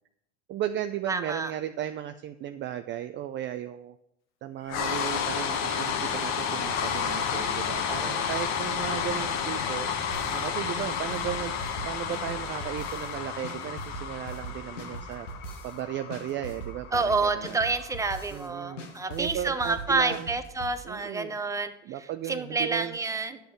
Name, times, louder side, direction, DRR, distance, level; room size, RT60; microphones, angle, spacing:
voice 1, 0.5-4.0 4.4-9.9 10.3-11.6 11.9-15.3 15.6-17.6 18.3-20.3 20.8-21.4 21.8-23.0, right 11 dB, 30° right, 9 dB, 0.5 m, -35 dB
voice 2, 1.1-1.5 16.9-21.7 22.3-23.4, right 3 dB, 10° right, 9 dB, 0.8 m, -28 dB
sound 1, 4.7-18.8, left 7 dB, 45° left, 1.2 m, -31 dB
sound 2, 10.1-10.5 10.8-13.1 13.4-15.8 16.1-18.5 18.8-20.8, right 1 dB, 85° left, 1.5 m, -40 dB
10.5 x 6.9 x 5.1 m, 0.79 s
hypercardioid pair, 85°, 36 cm